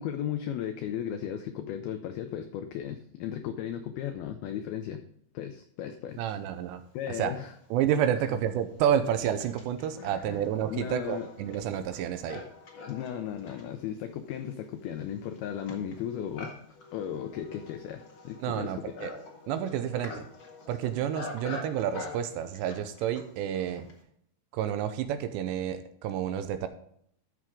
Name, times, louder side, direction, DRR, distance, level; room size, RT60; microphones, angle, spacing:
voice 1, 0.0-5.0 5.3-6.2 6.9-7.5 10.0-10.4 10.7-11.3 12.9-16.5 16.9-18.8, left 9 dB, 90° left, 8 dB, 2.1 m, -35 dB
voice 2, 6.2-6.8 7.1-7.3 7.7-12.4 18.4-19.1 19.5-20.3 20.7-23.9 24.5-26.7, right 10 dB, 80° right, 9 dB, 2.8 m, -30 dB
Livestock farm animals working animals, 7.3-7.4 8.1-24.0, left 3 dB, 60° left, 1.2 m, -45 dB
13.5 x 6.2 x 3.7 m, 0.68 s
omnidirectional pair, 5.3 m